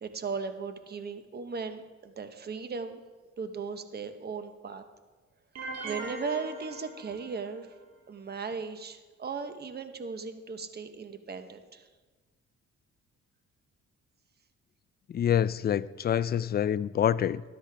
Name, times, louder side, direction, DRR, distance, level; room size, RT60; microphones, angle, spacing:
voice 1, 0.0-3.0 3.4-4.8 5.8-7.7 8.1-11.9, right 5 dB, 35° right, 9 dB, 0.9 m, -37 dB
sound 1, 5.6-7.7, right 2 dB, 60° right, 2.0 m, -40 dB
voice 2, 15.1-17.4, left 9 dB, 35° left, 17 dB, 0.4 m, -26 dB
13.0 x 12.0 x 3.4 m, 1.3 s
cardioid pair, 90°, 30 cm